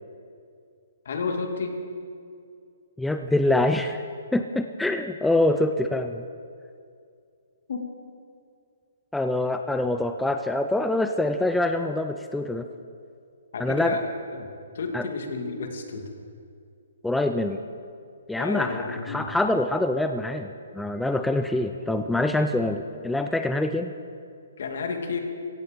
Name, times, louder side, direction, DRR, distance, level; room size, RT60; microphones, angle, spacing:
voice 1, 1.0-1.8 7.7-7.9 13.5-14.0 14.3-14.5 14.7-16.1 18.3-19.3 24.6-25.2, left 4 dB, 65° left, 4 dB, 2.4 m, -31 dB
voice 2, 3.0-4.0 4.3-6.2 9.1-12.7 13.6-14.0 14.9-15.1 17.0-17.6 18.3-23.9, left 1 dB, 5° left, 7 dB, 0.5 m, -25 dB
16.5 x 15.0 x 5.2 m, 2.3 s
hypercardioid pair, 155°, 0 cm